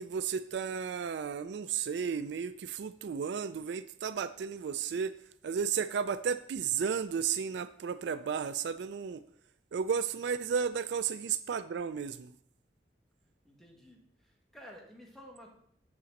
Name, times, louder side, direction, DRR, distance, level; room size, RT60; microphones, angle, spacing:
voice 1, 0.0-5.1 5.4-9.2 9.7-12.3, right 6 dB, 70° right, 13 dB, 0.3 m, -33 dB
voice 2, 13.4-15.5, equal, ahead, -1 dB, 1.6 m, -53 dB
8.4 x 4.1 x 6.4 m, 0.65 s
head